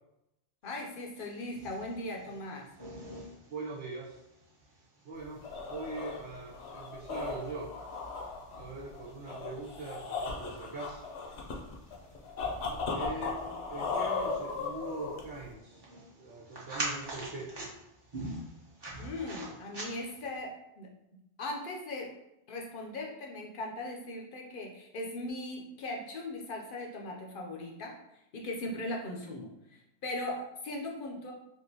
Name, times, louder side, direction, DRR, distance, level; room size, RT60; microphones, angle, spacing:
voice 1, 0.6-2.7 19.0-20.9 21.4-22.1 22.5-28.0 28.3-31.3, left 1 dB, 60° left, 0 dB, 0.6 m, -39 dB
sound 1, 0.9-20.4, right 1 dB, 25° right, 0.7 m, -46 dB
voice 2, 3.5-4.2 5.0-7.8 8.6-11.0 12.9-15.8 16.2-17.7, right 3 dB, 75° right, -7 dB, 1.0 m, -42 dB
sound 2, 5.2-15.5, left 4 dB, 85° left, 0.9 m, -37 dB
3.6 x 2.5 x 2.7 m, 0.87 s
omnidirectional pair, 1.2 m